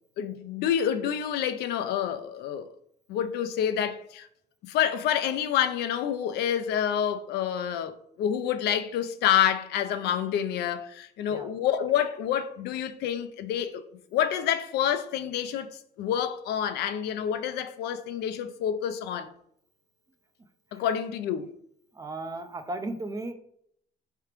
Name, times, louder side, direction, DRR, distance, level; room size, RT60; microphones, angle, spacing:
voice 1, 0.2-2.7 3.1-4.3 4.7-13.8 14.1-19.3 20.7-21.5, left 9 dB, 75° left, 0.5 m, -28 dB
voice 2, 22.0-23.3, right 2 dB, 20° right, 0.4 m, -35 dB
4.7 x 3.4 x 3.0 m
cardioid pair, 110°, 17 cm